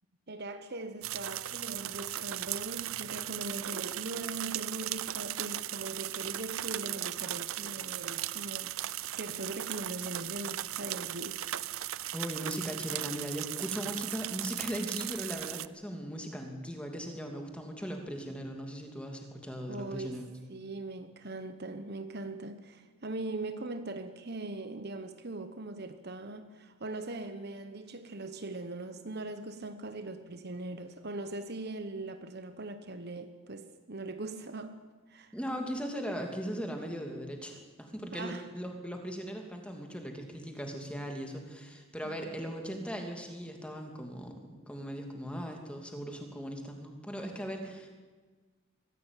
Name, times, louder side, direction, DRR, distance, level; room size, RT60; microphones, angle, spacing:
voice 1, 0.3-8.8 9.1-11.4 19.7-20.2 20.5-35.4 38.1-38.5 42.0-42.4, right 2 dB, 45° right, 1.1 m, -40 dB
sound 1, 1.0-15.7, right 14 dB, 70° right, 0.6 m, -37 dB
voice 2, 12.1-20.3 35.3-47.9, equal, 5° left, 2.8 m, -39 dB
23.0 x 16.0 x 9.1 m
head